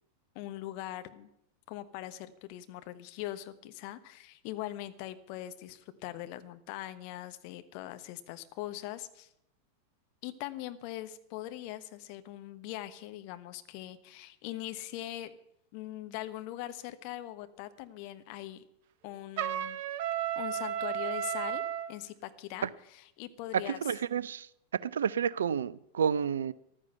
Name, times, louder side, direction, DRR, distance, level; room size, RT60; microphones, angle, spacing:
voice 1, 0.3-1.3 1.7-9.3 10.2-15.3 15.7-18.6 19.0-19.8 20.4-21.6 21.9-23.9, left 14 dB, 45° left, 1.1 m, -41 dB
Trumpet, 19.4-21.9, right 10 dB, 50° right, 0.9 m, -33 dB
voice 2, 23.7-24.5 24.8-26.5, right 7 dB, 65° right, 0.5 m, -30 dB
14.5 x 12.5 x 5.7 m
figure-of-eight pair, 90°, 0 cm